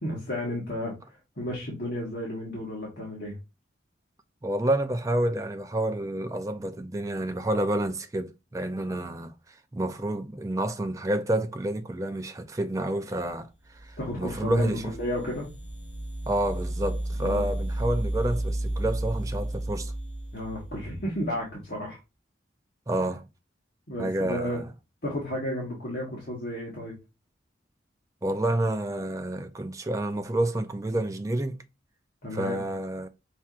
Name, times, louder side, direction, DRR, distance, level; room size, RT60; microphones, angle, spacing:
voice 1, 0.0-0.9 1.4-3.4 14.0-15.5 17.2-17.5 20.3-22.0 23.9-24.6 25.0-26.9 32.2-32.6, left 1 dB, 55° left, 1.4 m, -33 dB
voice 2, 4.4-9.3 9.7-13.5 13.8-14.9 16.3-19.9 22.9-23.2 24.0-24.7 28.2-31.6 32.3-33.1, right 1 dB, 15° right, 0.4 m, -29 dB
sound 1, 13.7-21.3, right 1 dB, 30° left, 1.2 m, -33 dB
5.7 x 2.8 x 2.4 m
head